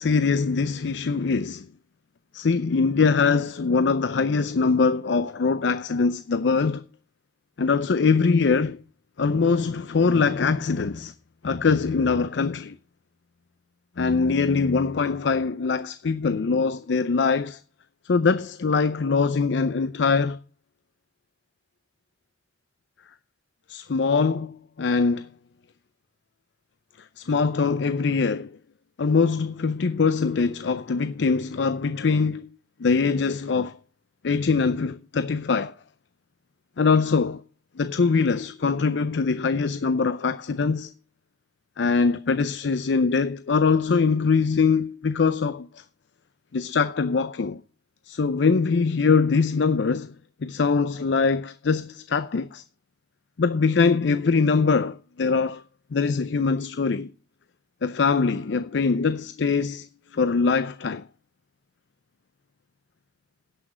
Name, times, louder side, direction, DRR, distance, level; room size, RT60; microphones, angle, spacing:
voice 1, 0.0-1.7 2.3-6.8 7.6-8.8 9.2-11.1 11.4-12.8 14.0-17.6 18.1-20.4 23.7-25.3 27.2-28.6 29.0-32.5 32.8-33.8 34.2-35.7 36.8-37.4 37.8-40.9 41.8-45.8 46.5-47.6 48.1-50.1 50.4-52.6 53.4-55.6 55.9-57.1 57.8-59.9 60.1-61.0, left 4 dB, 90° left, 0.5 m, -23 dB
11.0 x 6.1 x 6.2 m
head